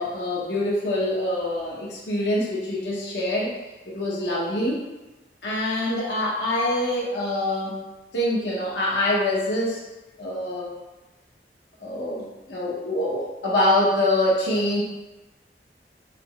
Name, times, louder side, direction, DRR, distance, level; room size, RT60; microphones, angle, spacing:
voice 1, 0.0-3.6 3.9-4.8 5.4-7.8 8.1-9.8 10.2-10.7 11.8-14.8, left 1 dB, 80° left, -4 dB, 0.8 m, -25 dB
4.3 x 2.0 x 3.0 m, 1.1 s
head